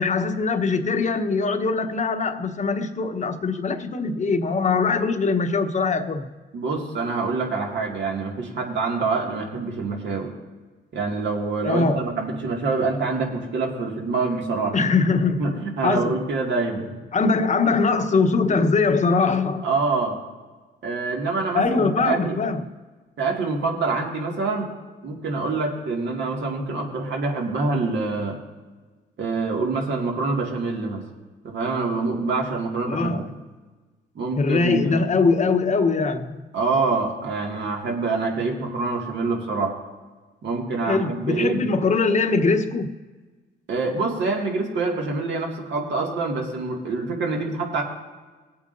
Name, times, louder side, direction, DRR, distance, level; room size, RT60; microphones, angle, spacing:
voice 1, 0.0-6.3 11.6-12.1 14.7-16.2 17.1-19.7 21.5-22.6 32.9-33.3 34.4-36.4 40.9-42.9, left 4 dB, 35° left, 1.0 m, -22 dB
voice 2, 6.5-10.3 10.9-14.7 15.4-17.0 19.6-20.2 20.8-22.4 23.2-24.7 25.0-28.4 29.2-31.0 31.4-33.2 34.2-35.0 36.5-39.7 40.4-41.6 43.7-47.8, right 3 dB, 65° right, 2.2 m, -26 dB
19.0 x 8.5 x 2.7 m
cardioid pair, 90°, 20 cm